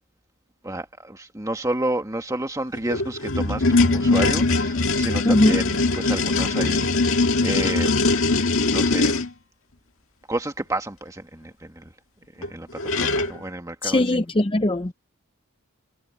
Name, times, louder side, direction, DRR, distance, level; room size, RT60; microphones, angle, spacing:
voice 1, 0.6-8.0 8.7-9.1 10.3-11.9 12.4-14.2, right 1 dB, 15° right, 1.7 m, -30 dB
sound 1, 2.8-9.3 12.4-12.5 12.8-13.4, left 3 dB, 65° left, 2.0 m, -21 dB
voice 2, 5.2-5.6 13.8-14.9, left 1 dB, 25° left, 0.6 m, -20 dB
head